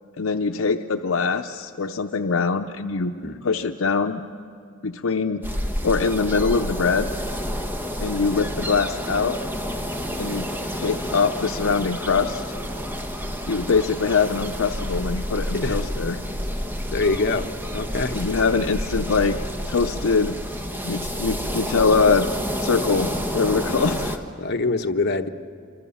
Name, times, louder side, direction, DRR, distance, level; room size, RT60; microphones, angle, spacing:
voice 1, 0.2-3.1 3.4-4.2 4.8-5.4 5.8-7.1 8.0-9.4 10.2-10.5 10.8-12.4 13.5-16.2 18.1-19.4 19.7-20.4 20.8-22.3 22.6-24.2, left 4 dB, 75° left, 7 dB, 0.7 m, -23 dB
sound 1, 5.4-24.2, equal, 10° right, 1.3 m, -29 dB
voice 2, 16.9-18.2 24.4-25.3, left 3 dB, 55° left, 5 dB, 1.0 m, -25 dB
26.5 x 24.5 x 7.1 m, 2.3 s
head